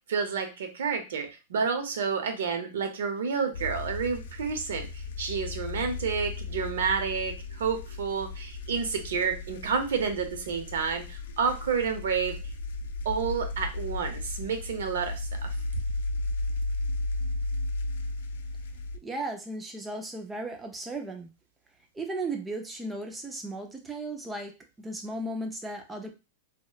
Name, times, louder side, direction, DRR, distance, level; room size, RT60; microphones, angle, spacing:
voice 1, 0.1-12.4 13.0-15.5, right 6 dB, 90° right, 6 dB, 0.6 m, -30 dB
sound 1, 3.5-19.0, left 2 dB, 80° left, 0.4 m, -35 dB
voice 2, 19.0-21.3 21.9-26.1, right 2 dB, 5° right, 4 dB, 0.3 m, -36 dB
2.8 x 2.1 x 2.2 m, 0.28 s
supercardioid pair, 175°, 0 cm